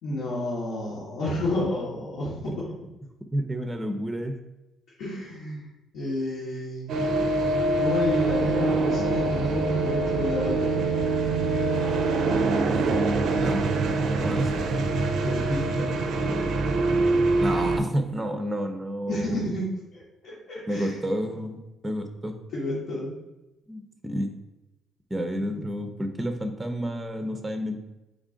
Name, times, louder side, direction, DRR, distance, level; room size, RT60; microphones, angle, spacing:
voice 1, 0.0-2.6 5.0-5.7 5.9-6.9 7.8-10.7 15.2-15.9 19.1-19.7 19.9-21.0 22.5-23.1, left 1 dB, 80° left, -8 dB, 1.1 m, -30 dB
voice 2, 3.3-4.3 12.7-13.6 14.2-14.6 17.4-19.5 20.7-22.3 23.7-24.3 25.1-27.8, equal, 15° right, 5 dB, 0.5 m, -30 dB
sound 1, 6.9-17.8, right 3 dB, 70° right, 0.4 m, -24 dB
3.7 x 2.4 x 3.7 m, 0.96 s
cardioid pair, 90°, 0 cm